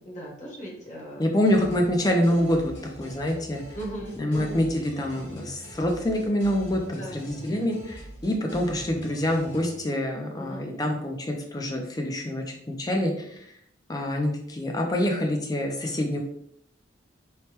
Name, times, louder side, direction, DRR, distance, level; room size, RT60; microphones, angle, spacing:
voice 1, 0.0-1.3 3.7-4.7 6.9-7.2 10.4-10.7, right 1 dB, 40° left, -3 dB, 0.9 m, -38 dB
voice 2, 1.2-2.7 3.0-3.6 4.2-13.1 13.9-16.2, left 1 dB, 20° left, 2 dB, 0.4 m, -26 dB
sound 1, 1.4-9.8, equal, 65° left, 1.2 m, -44 dB
3.2 x 2.1 x 2.9 m, 0.72 s
head